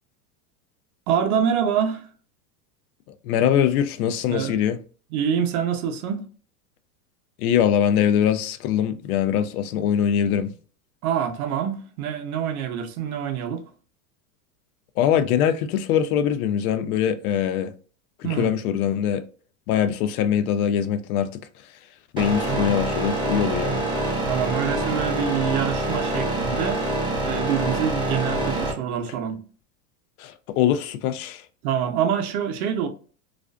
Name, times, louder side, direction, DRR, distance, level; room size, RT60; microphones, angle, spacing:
voice 1, 1.1-2.1 4.3-4.6 5.1-6.3 11.0-13.6 18.2-18.6 22.5-22.7 23.6-23.9 24.3-26.9 27.2-29.4 31.6-32.9, right 8 dB, 70° right, 0.7 m, -26 dB
voice 2, 3.2-4.8 7.4-10.5 15.0-17.7 18.2-19.2 19.7-21.3 22.1-23.8 30.2-31.4, left 9 dB, 70° left, 0.5 m, -22 dB
sound 1, 22.2-28.7, right 1 dB, 10° right, 0.6 m, -26 dB
2.4 x 2.3 x 2.2 m
supercardioid pair, 130°, 46 cm